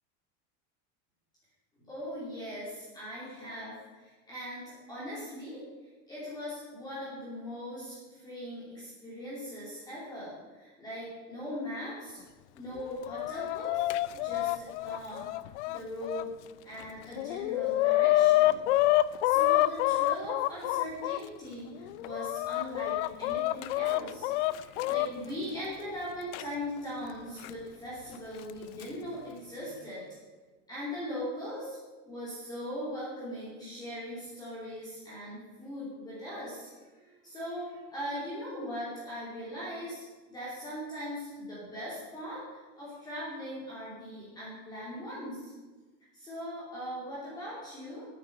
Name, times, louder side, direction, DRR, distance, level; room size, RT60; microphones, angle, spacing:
voice 1, 1.8-5.6 6.1-12.2 12.5-13.9 14.2-15.3 15.7-16.3 16.6-18.6 19.2-30.0 30.7-31.8 32.0-45.5 46.1-48.1, equal, 10° left, -9 dB, 3.0 m, -40 dB
Chicken rooster, 12.8-16.2 16.8-16.9 17.2-21.2 21.8-25.1 26.3-26.4 27.4-27.5 28.5-28.8, left 16 dB, 70° left, 0.5 m, -27 dB
9.0 x 9.0 x 6.6 m, 1.3 s
supercardioid pair, 175°, 36 cm